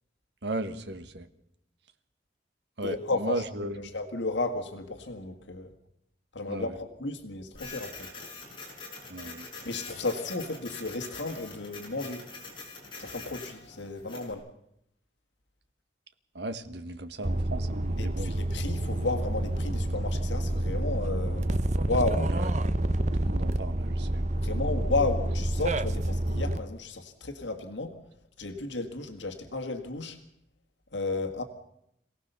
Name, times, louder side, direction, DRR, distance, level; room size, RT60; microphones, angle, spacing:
voice 1, 0.4-1.3 2.8-3.9 6.5-6.8 9.1-9.4 16.3-18.3 22.3-22.5 23.2-24.3, right 1 dB, 70° right, 10 dB, 1.6 m, -36 dB
voice 2, 2.8-3.5 3.8-5.7 6.3-8.1 9.7-12.3 13.0-14.5 18.0-21.5 21.8-22.3 24.4-28.0 28.4-30.2 30.9-31.4, left 3 dB, 85° left, 6 dB, 1.9 m, -33 dB
Printer, 7.5-14.3, left 3 dB, 25° left, 6.1 m, -44 dB
sound 1, 17.2-26.6, right 1 dB, 40° right, 0.9 m, -28 dB
27.0 x 17.5 x 6.9 m, 0.79 s
head